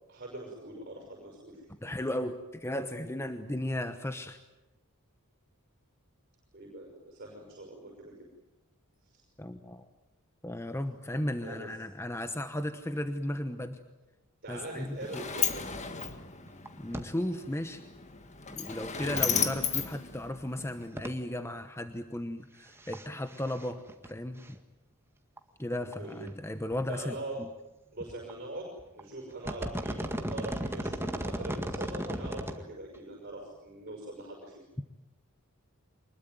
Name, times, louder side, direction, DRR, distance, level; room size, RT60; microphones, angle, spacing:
voice 1, 0.1-1.7 6.5-8.1 9.1-9.2 11.4-11.7 14.4-15.8 26.0-26.2 26.9-27.4 27.9-34.6, right 1 dB, 45° right, 1 dB, 5.8 m, -42 dB
voice 2, 1.8-4.4 9.4-9.9 10.4-13.8 14.5-15.2 16.8-17.8 18.5-23.8 24.0-24.6 25.6-27.5, left 1 dB, 10° left, 9 dB, 1.0 m, -35 dB
Sliding door, 14.5-20.9, left 7 dB, 30° left, 1.8 m, -34 dB
sound 1, 16.1-16.2 16.5-16.7 16.9-17.0 17.3-17.4 19.7-19.8 21.0-21.1 22.7-23.1 23.3-24.1 24.5-24.6 25.4-25.5 25.9-26.0 26.3-26.4 26.7-27.1 28.1-28.3 28.8-29.0 29.3-32.6 32.9-33.0, right 1 dB, 10° right, 1.8 m, -35 dB
24.5 x 21.0 x 9.2 m, 1.0 s
head